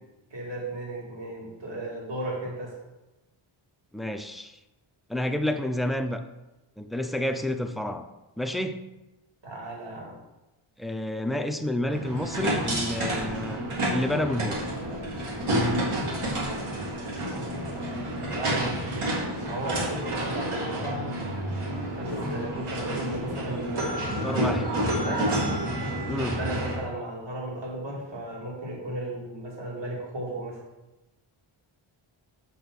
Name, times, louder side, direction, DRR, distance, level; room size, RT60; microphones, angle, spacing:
voice 1, 0.3-2.8 9.4-10.2 17.3-19.1 19.4-21.1 22.0-25.3 26.1-30.6, right 1 dB, 60° right, -2 dB, 2.4 m, -35 dB
voice 2, 3.9-4.6 5.1-6.2 6.8-8.1 8.4-8.8 10.8-13.6 13.9-14.7 24.2-24.6 26.1-26.4, left 1 dB, ahead, 7 dB, 0.4 m, -29 dB
sound 1, 11.9-26.8, right 1 dB, 75° right, 2.6 m, -29 dB
5.3 x 5.0 x 6.3 m, 1.0 s
wide cardioid pair, 95°, 50 cm